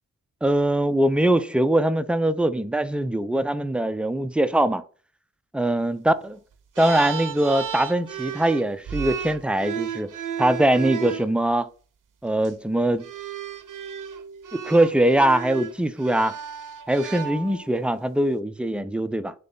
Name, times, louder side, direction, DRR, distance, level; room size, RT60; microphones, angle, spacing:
voice 1, 0.4-4.8 5.5-6.4 6.8-10.1 10.4-11.7 12.2-13.1 14.5-16.3 16.9-19.3, right 1 dB, 5° right, 0.3 m, -22 dB
sound 1, 6.8-11.3 12.3-12.5 13.0-17.8, right 8 dB, 60° right, 0.6 m, -33 dB
3.5 x 3.3 x 3.8 m
cardioid pair, 40°, 37 cm